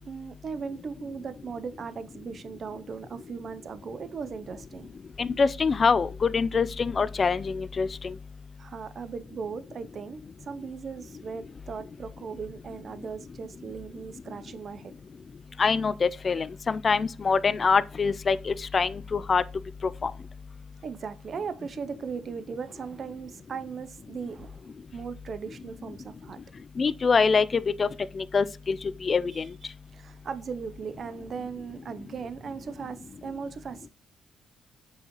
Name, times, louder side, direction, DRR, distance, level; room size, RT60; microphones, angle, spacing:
voice 1, 0.0-4.9 8.6-14.9 20.8-24.7 24.9-26.4 29.9-33.9, right 6 dB, 50° right, 0.5 m, -38 dB
voice 2, 5.2-8.1 15.6-19.4 20.0-20.1 26.8-27.9 28.2-28.8 29.0-29.5, left 5 dB, 40° left, 0.4 m, -24 dB
7.0 x 4.8 x 2.9 m
cardioid pair, 90°, 0 cm